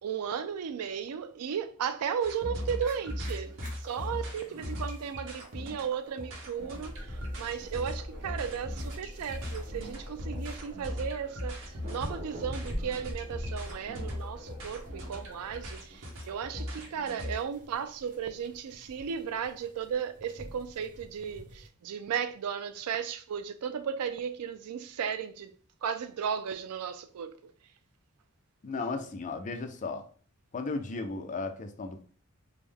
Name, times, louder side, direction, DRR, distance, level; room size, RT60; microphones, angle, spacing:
voice 1, 0.0-25.5 25.8-27.5, right 7 dB, 85° right, 0.4 m, -35 dB
sound 1, 2.2-17.4, left 1 dB, 60° right, 0.9 m, -39 dB
sound 2, 2.3-21.7, equal, 35° right, 0.9 m, -47 dB
sound 3, 6.6-15.7, equal, 50° left, 1.1 m, -47 dB
voice 2, 28.6-30.0 30.5-32.0, left 3 dB, 35° left, 0.4 m, -35 dB
3.4 x 2.0 x 3.4 m
head